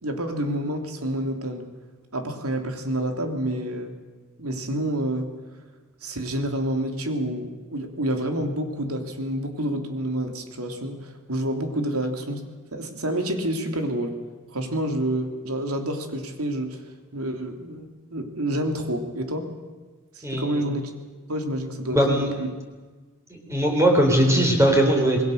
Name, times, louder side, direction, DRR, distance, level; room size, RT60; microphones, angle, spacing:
voice 1, 0.0-1.7 2.1-3.9 4.4-5.3 6.0-12.5 12.7-14.2 14.5-16.8 17.1-19.5 20.1-20.9 21.3-22.5, right 1 dB, 80° right, 5 dB, 3.2 m, -28 dB
voice 2, 20.2-20.6 21.9-22.3 23.3-25.2, right 1 dB, 15° right, 1 dB, 3.9 m, -20 dB
26.5 x 20.5 x 6.6 m, 1.3 s
head